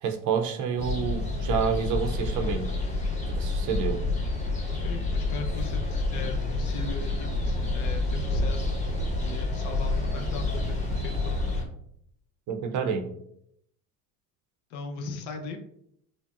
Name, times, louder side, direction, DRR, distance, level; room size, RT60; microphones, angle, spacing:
voice 1, 0.0-2.7 3.3-4.0 12.5-13.1, right 6 dB, 45° right, 5 dB, 0.6 m, -28 dB
sound 1, 0.8-11.6, left 2 dB, 15° left, 1.0 m, -28 dB
voice 2, 4.7-8.8 9.2-11.6 14.7-15.6, left 4 dB, 65° left, 3 dB, 0.8 m, -39 dB
5.4 x 2.1 x 2.4 m, 0.72 s
supercardioid pair, 115°, 44 cm